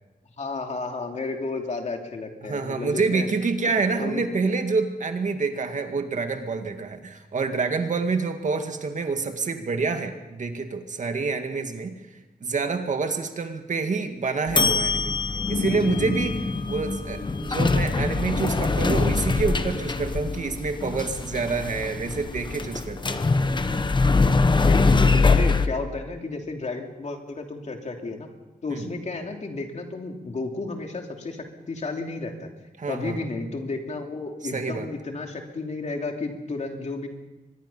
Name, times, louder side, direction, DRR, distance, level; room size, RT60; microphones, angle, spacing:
voice 1, 0.4-3.3 4.0-4.2 24.6-28.3 28.6-32.5 32.9-37.1, left 3 dB, 50° left, 3 dB, 2.9 m, -32 dB
voice 2, 2.4-11.9 12.4-15.2 15.5-23.2 28.7-28.9 32.8-33.2 34.5-34.9, right 4 dB, 55° right, 6 dB, 2.0 m, -27 dB
sound 1, 14.5-25.7, left 3 dB, 30° left, 1.0 m, -23 dB
24.0 x 21.0 x 5.6 m, 1.1 s
wide cardioid pair, 145°, 15 cm